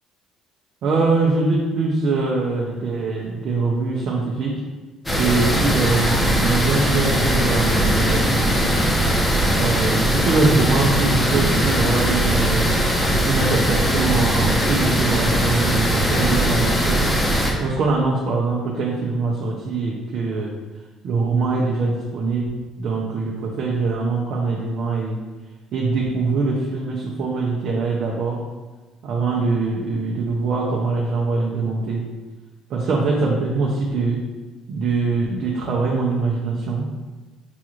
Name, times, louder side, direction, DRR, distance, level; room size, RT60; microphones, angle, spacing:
voice 1, 0.8-4.6 5.2-8.8 9.5-12.7 13.2-17.1 17.6-20.5 21.0-25.2 25.7-28.4 29.0-32.0 32.7-34.2 34.7-36.9, right 3 dB, 60° right, -3 dB, 0.6 m, -23 dB
sound 1, 5.1-17.5, equal, 15° left, 0.8 m, -20 dB
5.9 x 2.5 x 3.0 m, 1.2 s
cardioid pair, 110°, 0 cm